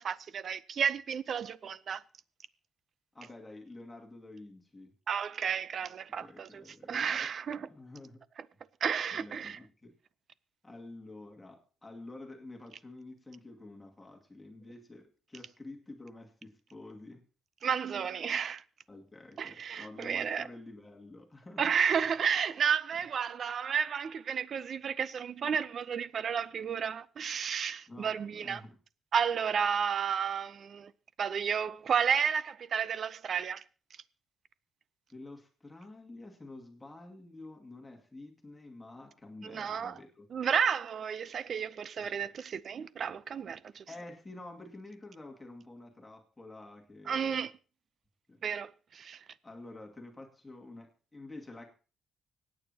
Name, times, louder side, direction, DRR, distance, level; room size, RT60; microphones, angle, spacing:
voice 1, 0.0-2.0 5.1-7.7 8.8-9.6 17.6-18.6 19.4-20.4 21.6-28.6 29.1-30.9 31.2-33.6 39.4-40.0 40.3-43.8 47.1-47.5 48.4-49.2, right 7 dB, 55° right, 0.6 m, -32 dB
voice 2, 3.1-4.9 6.1-8.2 9.1-10.0 10.6-17.2 18.9-21.7 27.9-28.8 35.1-40.3 42.0-42.2 43.9-47.5 48.3-48.4 49.4-51.7, left 2 dB, 15° left, 2.3 m, -49 dB
25.0 x 9.2 x 2.9 m
cardioid pair, 90°, 0 cm